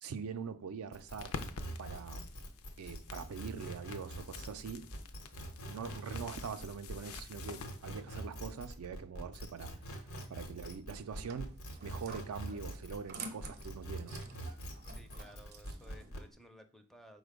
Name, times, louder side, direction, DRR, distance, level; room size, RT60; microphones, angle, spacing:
voice 1, 0.0-1.4 1.8-2.3 2.8-4.8 5.7-9.7 10.3-11.5 11.8-14.2, right 6 dB, 85° right, 0.4 m, -43 dB
sound 1, 0.9-13.1 13.4-16.3, right 1 dB, 90° left, 0.9 m, -44 dB
sound 2, 1.2-7.9, left 5 dB, 75° left, 0.4 m, -48 dB
sound 3, 10.9-16.1, right 4 dB, 45° right, 0.6 m, -50 dB
voice 2, 14.9-17.2, equal, ahead, 0.4 m, -57 dB
5.0 x 2.2 x 4.7 m
head